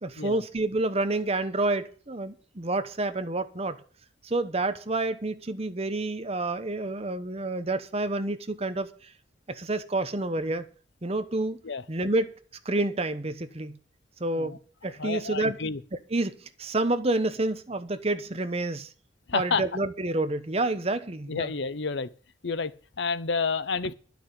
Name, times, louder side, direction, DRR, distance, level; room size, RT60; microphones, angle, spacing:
voice 1, 0.0-3.8 4.2-8.9 9.5-10.7 11.0-11.6 11.9-12.3 12.6-13.8 14.2-15.6 16.1-18.9 19.3-21.5, right 2 dB, 35° right, 1.0 m, -29 dB
voice 2, 15.0-15.8 19.3-19.6 21.3-22.1 22.4-23.9, left 4 dB, 70° left, 0.8 m, -29 dB
11.0 x 6.1 x 8.6 m
head